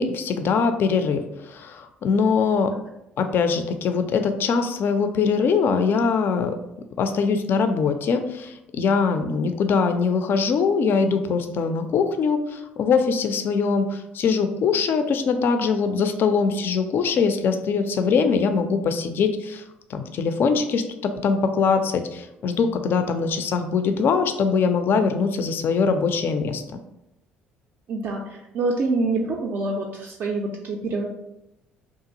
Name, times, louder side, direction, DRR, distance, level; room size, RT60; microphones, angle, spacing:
voice 1, 0.0-2.7 3.2-6.6 7.0-19.6 19.9-26.6, left 5 dB, 45° left, 8 dB, 0.3 m, -22 dB
voice 2, 27.9-31.1, right 3 dB, 45° right, -1 dB, 0.3 m, -26 dB
2.8 x 2.3 x 2.6 m, 0.88 s
figure-of-eight pair, 50°, 5 cm